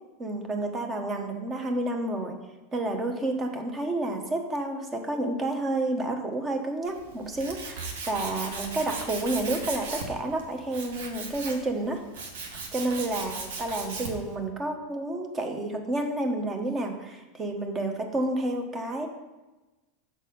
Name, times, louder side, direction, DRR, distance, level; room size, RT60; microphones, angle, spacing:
voice 1, 0.2-2.4 2.7-12.0 12.7-19.1, right 2 dB, 25° right, 4 dB, 1.1 m, -30 dB
Tools, 6.8-14.3, right 4 dB, 70° right, 1.1 m, -37 dB
6.5 x 4.0 x 5.3 m, 1.1 s
hypercardioid pair, 95°, 0 cm